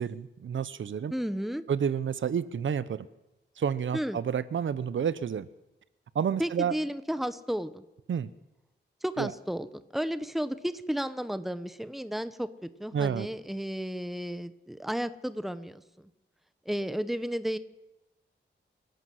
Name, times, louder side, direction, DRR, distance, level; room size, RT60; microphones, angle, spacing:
voice 1, 0.0-1.1 1.7-3.1 3.6-5.5 6.1-6.7 8.1-8.3 9.2-9.3 12.9-13.3, right 7 dB, 90° right, 16 dB, 0.8 m, -30 dB
voice 2, 1.1-1.6 3.9-4.2 6.4-7.8 9.0-9.7 9.9-15.8 16.7-17.6, equal, ahead, 13 dB, 1.0 m, -33 dB
28.5 x 12.0 x 7.8 m, 0.96 s
wide cardioid pair, 150°, 19 cm